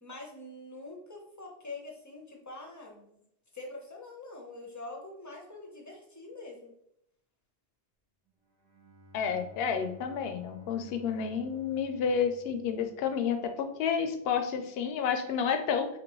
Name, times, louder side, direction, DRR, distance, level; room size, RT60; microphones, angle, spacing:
voice 1, 0.0-3.2 3.5-6.7, left 2 dB, 20° left, 0 dB, 0.7 m, -45 dB
Bowed string instrument, 8.4-13.4, left 1 dB, 50° right, 1.0 m, -54 dB
voice 2, 9.1-15.9, left 6 dB, 75° left, 7 dB, 0.8 m, -30 dB
4.3 x 2.9 x 3.0 m, 0.75 s
omnidirectional pair, 1.1 m